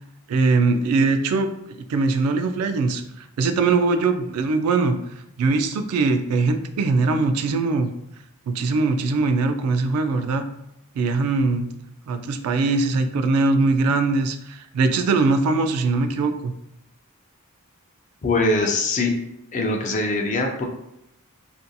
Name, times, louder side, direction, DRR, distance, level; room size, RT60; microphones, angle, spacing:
voice 1, 0.3-5.0 5.4-7.9 8.5-10.4 11.0-11.7 12.1-16.5, right 3 dB, 75° right, 12 dB, 0.3 m, -21 dB
voice 2, 18.2-19.1 19.5-20.6, left 2 dB, 35° left, 2 dB, 0.4 m, -22 dB
2.7 x 2.5 x 2.2 m, 0.81 s
head